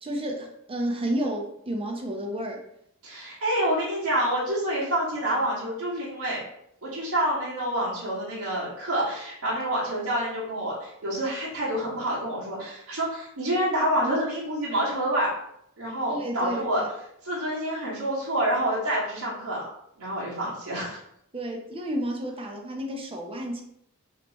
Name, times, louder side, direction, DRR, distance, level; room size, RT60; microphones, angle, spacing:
voice 1, 0.0-2.6 16.1-16.9 21.3-23.6, right 1 dB, 25° right, 2 dB, 0.7 m, -31 dB
voice 2, 3.0-6.4 6.8-15.3 15.8-16.8 17.2-19.6 20.0-21.0, right 1 dB, 75° right, -7 dB, 1.7 m, -27 dB
5.0 x 3.0 x 3.0 m, 0.74 s
head